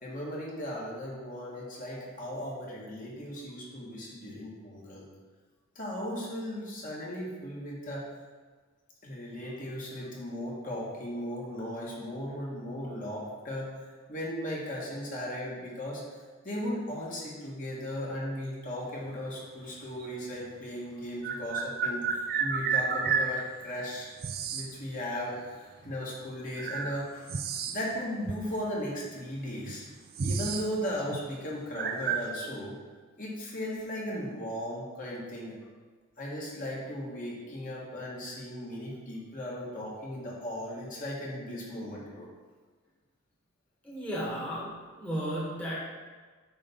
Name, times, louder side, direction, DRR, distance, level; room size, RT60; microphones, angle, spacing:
voice 1, 0.0-5.1 5.7-8.1 9.0-16.0 16.4-24.1 24.5-27.3 27.7-29.8 30.2-32.8 33.2-35.6 36.2-42.3, equal, 35° left, -5 dB, 1.6 m, -37 dB
sound 1, 20.0-20.1 21.2-23.3 24.2-24.7 25.8-25.9 26.5-28.0 28.2-28.4 29.2-29.3 29.6-30.7 31.0-31.2 31.7-32.3, right 5 dB, 45° right, 0.5 m, -31 dB
voice 2, 43.8-45.8, equal, 5° left, -8 dB, 1.4 m, -34 dB
8.7 x 3.4 x 5.5 m, 1.4 s
head